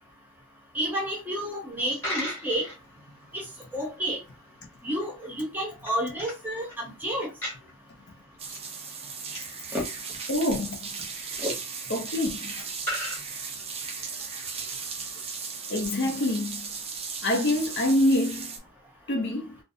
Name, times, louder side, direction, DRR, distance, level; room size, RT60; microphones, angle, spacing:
voice 1, 0.7-2.6 3.3-3.4 3.7-4.2 4.8-7.3 9.7-9.8 11.4-11.5, equal, 10° right, 0.8 m, -30 dB
Coin (dropping), 1.7-14.0, equal, 10° left, 1.0 m, -41 dB
sound 1, 8.4-18.6, right 5 dB, 30° right, 0.4 m, -36 dB
voice 2, 10.3-10.9 11.9-12.7 15.7-16.7 17.2-18.5 19.1-19.6, left 1 dB, 50° left, 0.6 m, -26 dB
2.5 x 2.1 x 2.6 m
head